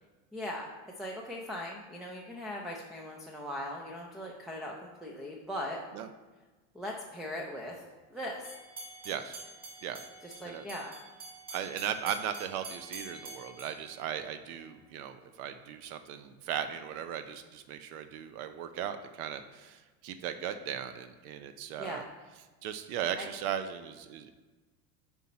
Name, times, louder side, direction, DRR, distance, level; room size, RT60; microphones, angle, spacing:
voice 1, 0.3-0.7 1.0-5.8 6.7-7.8 8.1-8.4 10.2-10.9 21.8-22.0 23.2-23.3, left 1 dB, ahead, -1 dB, 0.4 m, -39 dB
sound 1, 8.4-14.7, right 2 dB, 20° right, 2.0 m, -47 dB
voice 2, 9.0-9.4 9.8-10.0 10.4-10.6 11.5-22.0 22.6-24.3, right 9 dB, 80° right, 9 dB, 0.6 m, -37 dB
8.1 x 4.4 x 4.2 m, 1.3 s
supercardioid pair, 125°, 43 cm